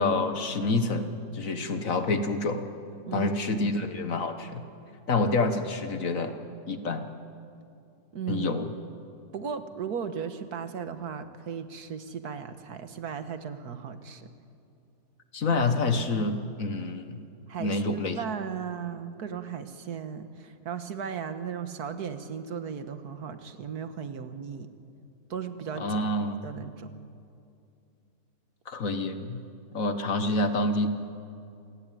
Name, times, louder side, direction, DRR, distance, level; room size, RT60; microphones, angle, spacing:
voice 1, 0.0-2.6 3.1-4.6 5.1-6.3 6.7-7.1 8.3-8.7 15.3-17.2 17.6-18.2 25.8-26.5 28.7-29.4 29.7-30.9, left 2 dB, 55° left, 8 dB, 1.6 m, -27 dB
voice 2, 3.1-3.7 8.1-8.6 9.3-14.3 17.5-17.8 18.2-24.7 25.3-25.9 26.4-26.9, right 7 dB, 70° right, 10 dB, 1.8 m, -36 dB
27.5 x 18.5 x 9.2 m, 2.6 s
omnidirectional pair, 1.7 m